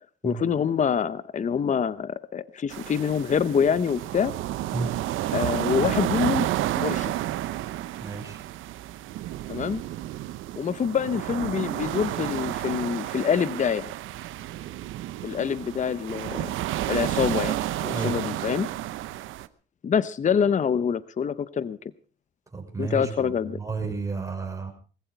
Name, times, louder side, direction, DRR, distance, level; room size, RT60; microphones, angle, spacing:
voice 1, 0.2-4.3 5.3-6.5 6.8-7.1 9.5-9.8 10.6-13.9 15.2-16.5 16.9-18.7 19.8-21.8 22.8-23.6, left 7 dB, 40° left, 16 dB, 0.7 m, -26 dB
sound 1, 2.7-19.5, right 14 dB, 85° right, 0.8 m, -31 dB
voice 2, 8.0-8.4 17.9-18.2 22.5-23.0 23.6-24.7, right 4 dB, 15° right, 2 dB, 5.8 m, -31 dB
19.5 x 15.0 x 4.5 m, 0.37 s
cardioid pair, 90°, 20 cm